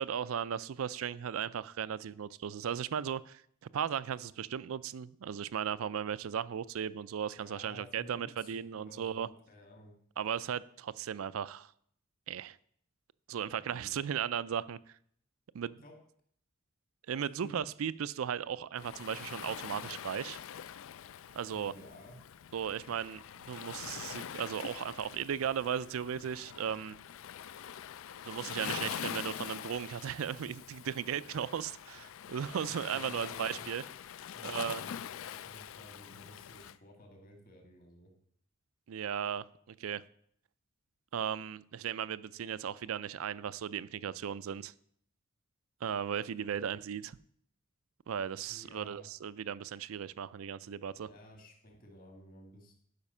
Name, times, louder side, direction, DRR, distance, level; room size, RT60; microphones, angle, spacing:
voice 1, 0.0-3.4 3.7-9.3 10.2-11.7 12.3-12.6 13.3-14.8 15.5-15.8 17.1-20.4 21.3-21.7 22.5-26.9 28.2-33.8 34.4-34.8 38.9-40.0 41.1-44.7 45.8-47.2 48.1-51.1, right 8 dB, 80° right, 18 dB, 0.4 m, -36 dB
voice 2, 7.4-9.9 13.6-14.1 15.8-16.0 17.4-17.6 21.5-22.2 32.9-33.7 34.3-35.0 35.2-38.1 46.3-46.6 48.5-49.1 51.0-52.7, left 1 dB, 45° left, 2 dB, 1.9 m, -54 dB
Waves surf, 18.8-36.8, left 9 dB, 70° left, 0.3 m, -44 dB
12.0 x 5.1 x 5.5 m, 0.66 s
head